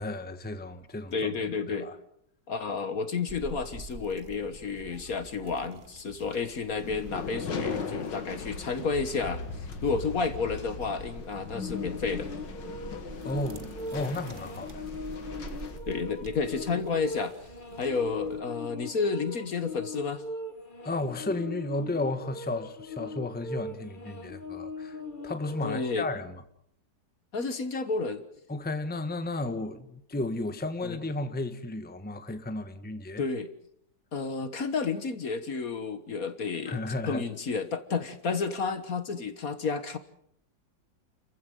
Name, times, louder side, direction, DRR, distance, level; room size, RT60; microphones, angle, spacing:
voice 1, 0.0-1.3 1.7-2.0 13.2-14.8 20.8-26.4 28.5-33.2 36.7-37.2, left 2 dB, 5° left, 1.2 m, -33 dB
voice 2, 1.1-1.9 2.5-12.3 15.9-17.3 17.8-20.2 25.6-26.1 27.3-28.2 30.8-31.0 33.2-33.5 34.1-36.8 37.1-40.0, left 4 dB, 50° left, 1.7 m, -31 dB
sound 1, 3.3-18.4, right 4 dB, 35° right, 1.1 m, -47 dB
sound 2, 6.8-15.8, left 5 dB, 75° left, 2.5 m, -38 dB
sound 3, 11.6-26.1, left 2 dB, 30° left, 1.8 m, -40 dB
30.0 x 15.0 x 7.9 m
omnidirectional pair, 2.0 m